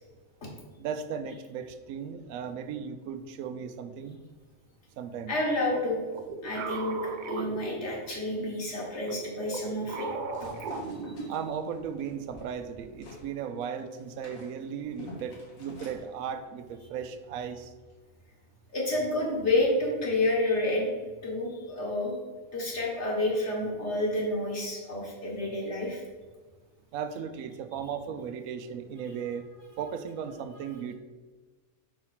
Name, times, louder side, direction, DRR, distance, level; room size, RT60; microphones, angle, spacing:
voice 1, 0.8-4.2 5.0-5.4 11.3-17.7 26.9-29.5 29.8-30.9, right 7 dB, 80° right, 10 dB, 1.0 m, -36 dB
voice 2, 5.3-6.0 6.4-7.0 7.3-10.1 10.4-10.5 11.2-11.3 18.7-20.9 21.2-22.2 22.5-26.0, left 1 dB, 55° left, -3 dB, 1.9 m, -29 dB
sound 1, 5.7-8.4 9.0-11.7, right 4 dB, 60° right, 0.5 m, -37 dB
sound 2, 10.3-13.3 13.6-16.0, left 2 dB, 80° left, 1.7 m, -47 dB
4.7 x 4.5 x 5.8 m, 1.3 s
omnidirectional pair, 1.4 m